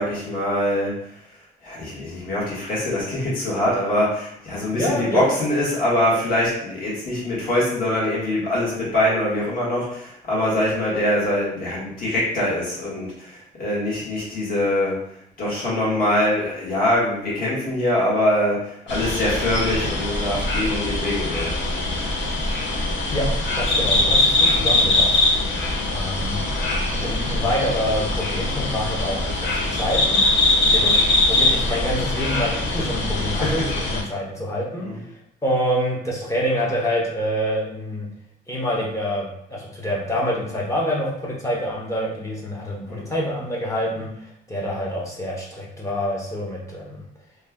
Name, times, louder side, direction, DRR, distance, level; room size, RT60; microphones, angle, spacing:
voice 1, 0.0-21.6 30.7-31.1 31.5-31.6 33.3-33.8 34.8-35.0 42.9-43.1, left 1 dB, 50° left, -6 dB, 1.4 m, -24 dB
voice 2, 4.7-5.2 23.1-23.3 23.6-25.1 25.9-26.4 26.9-30.2 30.7-30.8 31.2-34.9 35.4-38.1 38.5-44.1 44.5-47.0, equal, 15° left, -3 dB, 0.7 m, -26 dB
sound 1, 18.9-34.0, left 2 dB, 70° left, 0.7 m, -22 dB
3.2 x 2.2 x 3.5 m, 0.75 s
cardioid pair, 170°, 20 cm